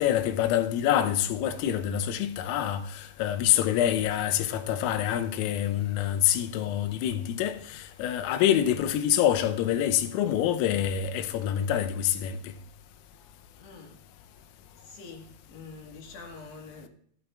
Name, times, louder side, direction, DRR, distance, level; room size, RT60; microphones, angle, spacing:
voice 1, 0.0-12.4, left 11 dB, 85° left, 3.4 m, -26 dB
voice 2, 13.6-14.0 14.8-16.9, left 4 dB, 65° left, 3.5 m, -46 dB
22.5 x 12.0 x 2.4 m
omnidirectional pair, 5.9 m